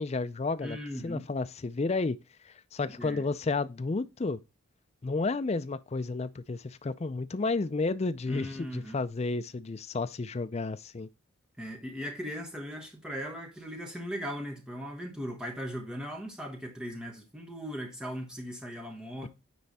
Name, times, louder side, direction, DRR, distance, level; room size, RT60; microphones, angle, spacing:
voice 1, 0.0-0.8 1.0-2.2 2.4-4.4 5.0-11.1, left 3 dB, 30° left, 0.4 m, -31 dB
voice 2, 0.6-1.3 3.0-3.3 8.3-9.0 11.6-19.3, equal, 5° right, 1.2 m, -38 dB
9.5 x 3.3 x 4.1 m
head